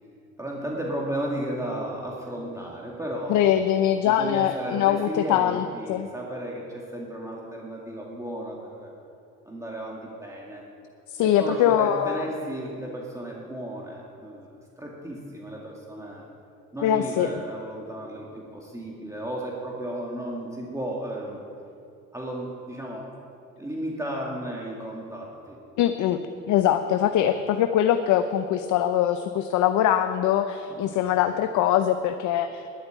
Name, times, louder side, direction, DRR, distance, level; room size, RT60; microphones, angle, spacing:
voice 1, 0.4-8.9 9.5-10.7 11.2-16.3 16.7-21.4 22.1-23.1 23.6-25.6 30.7-31.0, right 1 dB, 10° right, -3 dB, 2.3 m, -34 dB
voice 2, 3.3-6.1 11.1-12.3 16.8-17.3 25.8-26.2 26.5-32.7, left 10 dB, 70° left, 9 dB, 0.7 m, -22 dB
11.0 x 8.5 x 9.0 m, 2.7 s
supercardioid pair, 70°, 31 cm